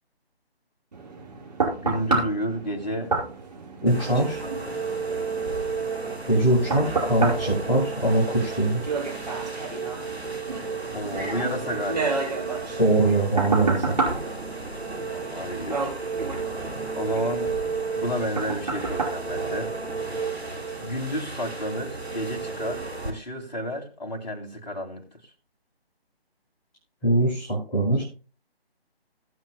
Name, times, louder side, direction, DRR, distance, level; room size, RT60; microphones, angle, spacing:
sound 1, 0.9-20.2 20.7-20.8, right 3 dB, 40° right, 5.1 m, -31 dB
voice 1, 1.7-3.2 4.4-4.6 10.9-12.2 15.1-15.9 16.9-17.5 18.0-19.7 20.8-25.0, equal, 45° left, 2.2 m, -31 dB
voice 2, 3.8-4.4 6.3-8.9 12.8-14.0 27.0-28.0, right 1 dB, 20° left, 4.2 m, -22 dB
sound 2, 3.9-23.1, right 4 dB, 80° right, 3.0 m, -32 dB
21.5 x 7.8 x 2.2 m
figure-of-eight pair, 155°, 32 cm